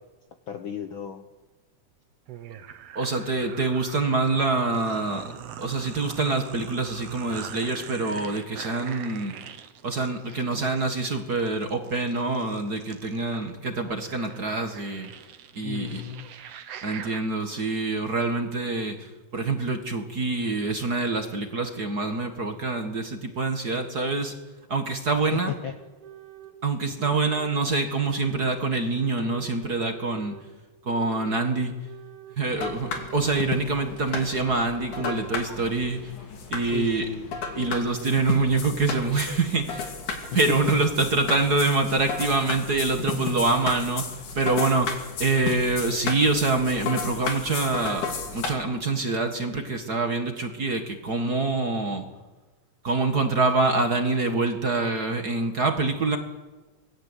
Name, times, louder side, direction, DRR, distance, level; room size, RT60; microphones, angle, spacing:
voice 1, 0.5-1.2 15.6-16.3 25.3-25.8 35.0-35.3 36.6-37.9 40.3-40.9, left 9 dB, 60° left, 7 dB, 1.4 m, -35 dB
sound 1, 2.3-17.2, right 9 dB, 60° right, 2.1 m, -43 dB
voice 2, 3.0-5.3 5.6-9.3 9.8-15.1 15.6-16.0 16.8-24.3 24.7-25.5 26.6-30.3 30.8-31.7 32.4-36.0 36.5-37.1 37.6-39.9 40.3-44.0 44.4-44.9 45.2-52.0 52.8-56.2, right 3 dB, 35° right, 6 dB, 1.9 m, -25 dB
sound 2, 23.8-23.9 24.8-24.9 25.8-26.6 27.0-27.5 28.0-28.5 28.9-29.5 29.9-30.5 30.9-31.4 31.8-32.4 32.8-33.4 33.8-34.4 34.8-35.3, right 12 dB, 80° right, 3.1 m, -46 dB
sound 3, 32.5-48.5, left 5 dB, 85° left, 4.2 m, -33 dB
26.5 x 20.0 x 8.2 m, 1.2 s
omnidirectional pair, 3.4 m